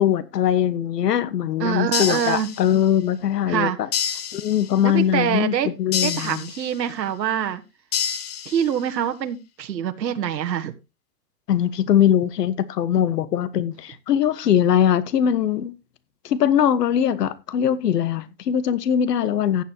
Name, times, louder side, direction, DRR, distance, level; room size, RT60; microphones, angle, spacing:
voice 1, 0.0-3.9 4.3-6.4 11.5-15.7 16.2-19.6, left 9 dB, 70° left, 1.4 m, -21 dB
voice 2, 1.6-2.5 3.5-3.8 4.8-5.7 6.0-7.6 8.4-10.7, right 9 dB, 90° right, 1.5 m, -25 dB
sound 1, 1.9-3.0 3.9-5.0 5.9-7.0 7.9-9.0, left 8 dB, 25° left, 0.7 m, -29 dB
15.0 x 9.6 x 2.9 m
hypercardioid pair, 165°, 49 cm